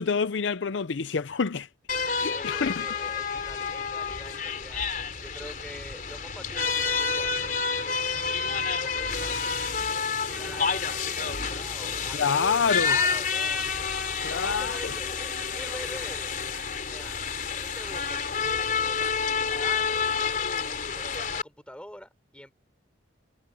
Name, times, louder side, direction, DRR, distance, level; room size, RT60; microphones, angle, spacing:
voice 1, 0.0-1.7 2.2-2.9 12.1-13.0 14.2-14.9, left 5 dB, 70° left, 0.6 m, -27 dB
sound 1, 1.9-21.4, left 5 dB, 45° left, 3.7 m, -29 dB
voice 2, 2.3-4.9 5.2-13.9 14.2-16.3 16.9-17.2 17.5-20.0 21.0-22.5, equal, 5° left, 6.3 m, -45 dB
head